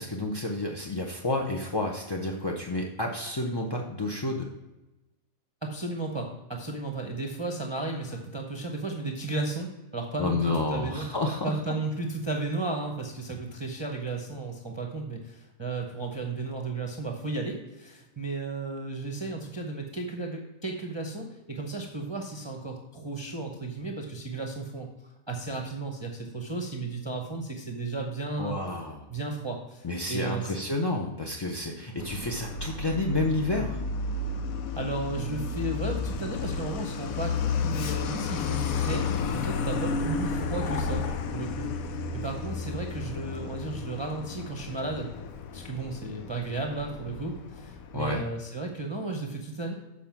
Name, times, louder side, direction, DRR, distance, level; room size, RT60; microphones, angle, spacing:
voice 1, 0.0-4.5 10.2-11.6 28.4-29.0 29.8-33.8 47.9-48.2, left 2 dB, 35° left, 0 dB, 0.4 m, -30 dB
voice 2, 5.6-11.1 11.4-24.9 25.3-28.6 29.1-30.6 34.8-41.7 42.1-45.1 45.5-49.7, right 3 dB, 25° right, 1 dB, 0.7 m, -34 dB
Truck, 32.0-48.2, left 5 dB, 80° left, 1.1 m, -32 dB
7.3 x 4.9 x 5.8 m, 1.0 s
omnidirectional pair, 1.5 m